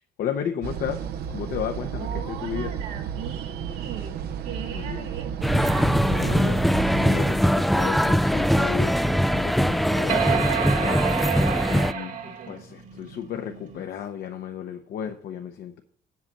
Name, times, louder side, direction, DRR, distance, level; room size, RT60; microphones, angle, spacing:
voice 1, 0.2-1.0 1.3-2.7 4.7-5.1 6.0-6.6 7.0-11.1 11.7-12.1 12.5-15.8, left 9 dB, 65° left, 4 dB, 1.0 m, -33 dB
sound 1, 0.6-7.2, right 8 dB, 70° right, 0.8 m, -32 dB
voice 2, 2.0-5.3 5.6-6.6 7.0-7.3 11.6-12.7, right 8 dB, 90° right, 0 dB, 2.1 m, -40 dB
sound 2, 5.4-11.9, equal, ahead, 0.4 m, -22 dB
sound 3, 7.3-13.8, right 8 dB, 50° right, 1.7 m, -31 dB
8.1 x 7.4 x 6.4 m, 0.63 s
cardioid pair, 110°, 17 cm